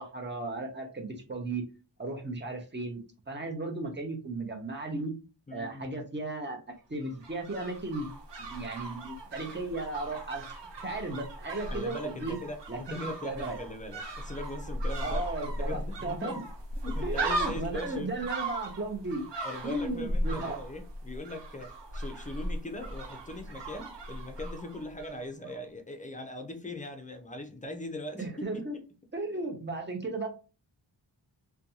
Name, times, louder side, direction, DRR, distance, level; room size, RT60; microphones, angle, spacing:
voice 1, 0.0-1.6 2.0-3.0 3.3-5.1 5.5-6.6 6.9-8.1 8.5-10.4 10.8-12.4 12.7-13.6 15.0-16.4 17.0-19.2 19.6-20.6 28.2-28.8 29.1-30.3, right 2 dB, 25° right, 0.6 m, -35 dB
voice 2, 5.5-6.0 11.7-16.5 16.7-18.2 19.4-28.8, left 1 dB, 20° left, 0.4 m, -40 dB
sound 1, 7.0-25.2 25.4-25.5, right 1 dB, 70° right, 0.7 m, -37 dB
2.5 x 2.2 x 2.7 m
wide cardioid pair, 100°, 45 cm